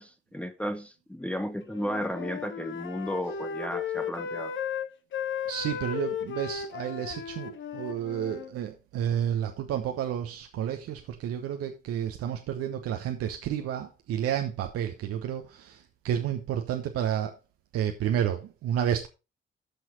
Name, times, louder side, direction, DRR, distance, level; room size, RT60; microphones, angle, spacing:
voice 1, 0.0-4.5, equal, 5° left, 0.9 m, -34 dB
Wind instrument woodwind instrument, 1.7-8.5, left 7 dB, 40° left, 1.0 m, -35 dB
voice 2, 5.5-17.3 17.7-19.1, right 10 dB, 55° right, 1.0 m, -31 dB
13.5 x 6.1 x 4.0 m
figure-of-eight pair, 45°, 29 cm